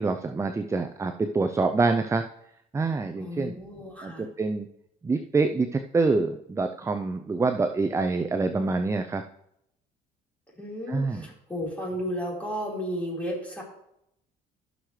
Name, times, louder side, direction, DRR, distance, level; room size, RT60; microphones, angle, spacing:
voice 1, 0.0-2.2 2.7-3.5 4.0-4.7 5.0-9.2 10.9-11.3, right 3 dB, 15° right, 7 dB, 0.5 m, -26 dB
voice 2, 3.2-4.3 10.5-13.6, equal, 10° left, -4 dB, 4.3 m, -33 dB
15.0 x 6.4 x 3.2 m, 0.78 s
cardioid pair, 110°, 17 cm